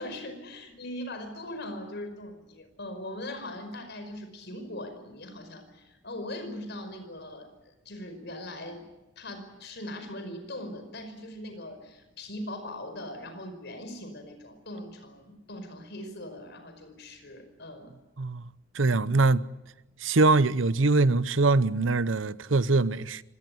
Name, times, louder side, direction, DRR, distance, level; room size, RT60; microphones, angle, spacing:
voice 1, 0.0-7.5 7.8-8.9 9.1-18.0, left 1 dB, 60° left, 5.2 m, -40 dB
voice 2, 18.7-19.4 20.0-23.2, right 3 dB, 90° right, 0.8 m, -23 dB
25.5 x 18.5 x 9.5 m
head